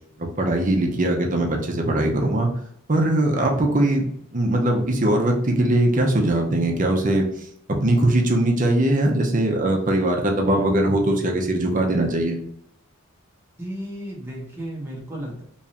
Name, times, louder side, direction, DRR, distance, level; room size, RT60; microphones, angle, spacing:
voice 1, 0.2-2.5 2.9-4.1 4.3-12.4, right 1 dB, 40° right, 2 dB, 0.7 m, -21 dB
voice 2, 13.6-15.4, equal, 10° right, -4 dB, 1.1 m, -33 dB
3.6 x 3.1 x 2.9 m, 0.69 s
head